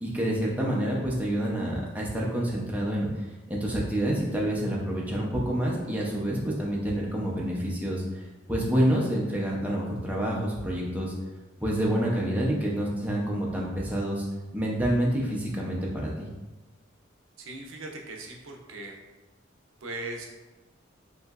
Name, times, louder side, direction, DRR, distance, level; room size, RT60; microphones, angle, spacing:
voice 1, 0.0-11.1 11.6-14.2 14.5-16.3, right 1 dB, 10° right, -4 dB, 0.4 m, -28 dB
voice 2, 17.4-19.0 19.8-20.3, right 2 dB, 80° right, 1 dB, 0.5 m, -39 dB
3.0 x 2.6 x 2.3 m, 1.1 s
head